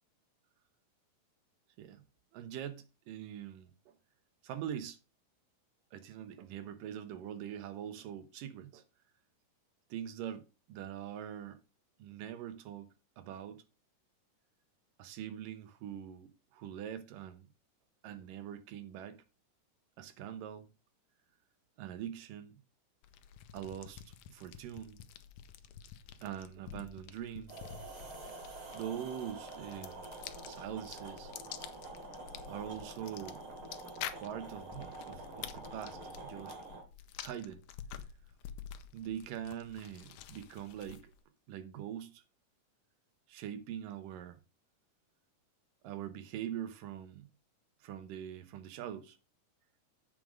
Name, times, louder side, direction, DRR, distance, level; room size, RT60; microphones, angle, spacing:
voice 1, 2.3-4.0 4.4-5.0 5.9-8.8 9.9-11.6 12.0-12.9 13.2-13.6 15.0-17.5 18.0-19.2 20.0-20.7 21.8-22.6 23.5-25.0 26.2-27.6 28.3-28.4 28.7-30.1 30.5-31.3 32.5-33.4 34.2-36.6 37.2-37.6 38.9-41.1 41.5-42.2 43.3-44.4 45.8-47.3 47.8-49.2, right 10 dB, 80° right, 2.7 m, -43 dB
sound 1, 23.0-41.2, left 10 dB, 75° left, 2.1 m, -49 dB
sound 2, 27.5-36.8, right 3 dB, 40° right, 3.0 m, -47 dB
7.7 x 6.3 x 5.1 m
omnidirectional pair, 3.8 m